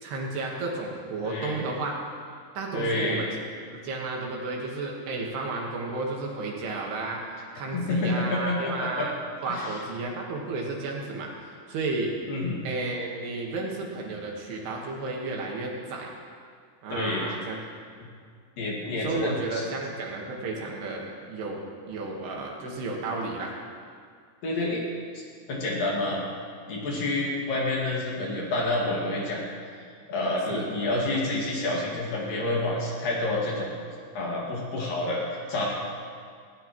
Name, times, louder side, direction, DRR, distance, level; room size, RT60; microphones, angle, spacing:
voice 1, 0.0-1.9 2.5-3.4 3.7-7.2 7.5-9.1 9.4-12.1 12.6-16.1 16.8-17.6 19.0-23.5 30.5-30.7, right 3 dB, 65° right, -1 dB, 3.3 m, -32 dB
voice 2, 1.2-1.6 2.7-3.2 7.7-9.1 9.5-9.8 12.3-12.6 16.9-17.2 18.6-19.6 24.4-24.8 25.5-26.2 26.7-29.4 29.8-33.7 34.1-35.7, left 2 dB, 55° left, -4 dB, 3.3 m, -28 dB
19.0 x 16.5 x 3.1 m, 2.1 s
omnidirectional pair, 5.3 m